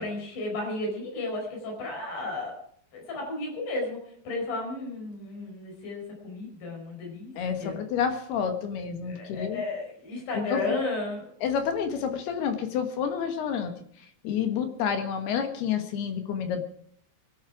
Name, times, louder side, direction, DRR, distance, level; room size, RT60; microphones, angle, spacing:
voice 1, 0.0-2.5 2.9-7.3 7.6-7.8 9.0-11.2, left 2 dB, 45° left, 0 dB, 6.2 m, -33 dB
voice 2, 7.4-9.6 10.3-10.8 11.4-13.7 14.0-16.7, left 7 dB, 70° left, 7 dB, 3.3 m, -29 dB
23.0 x 10.5 x 4.9 m, 0.62 s
omnidirectional pair, 5.2 m